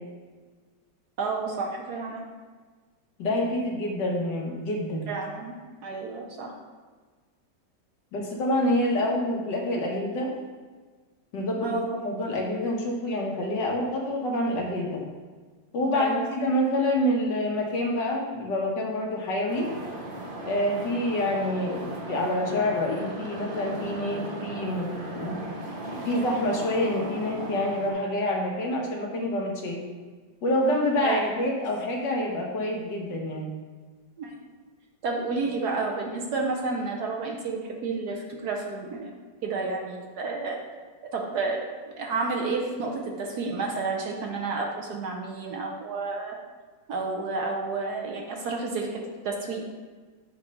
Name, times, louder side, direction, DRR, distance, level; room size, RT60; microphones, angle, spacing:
voice 1, 1.2-2.3 5.1-5.5 5.8-6.5 11.6-12.0 15.9-16.3 31.0-31.4 34.2-34.3 35.0-39.1 39.4-40.6 41.1-41.6 42.0-46.4 46.9-49.6, right 3 dB, 65° right, 0 dB, 1.2 m, -30 dB
voice 2, 3.2-5.1 8.1-10.3 11.3-15.1 15.7-19.7 20.4-25.4 25.9-29.8 30.4-33.5, left 1 dB, 70° left, -1 dB, 1.6 m, -27 dB
sound 1, 19.5-27.9, right 1 dB, 40° right, 0.8 m, -37 dB
7.9 x 3.2 x 5.2 m, 1.4 s
omnidirectional pair, 2.1 m